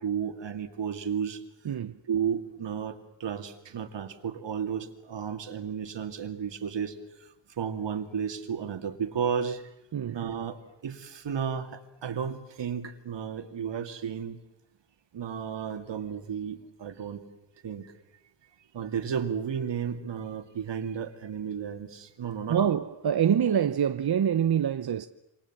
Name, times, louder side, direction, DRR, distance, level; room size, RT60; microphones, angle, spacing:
voice 1, 0.0-1.4 2.1-9.6 10.1-14.4 15.1-17.2 17.6-17.9 18.7-22.7, right 7 dB, 85° right, 2.4 m, -33 dB
voice 2, 1.6-2.0 9.9-10.2 22.5-25.1, right 8 dB, 60° right, 1.0 m, -25 dB
28.0 x 27.0 x 7.4 m
wide cardioid pair, 125°, 42 cm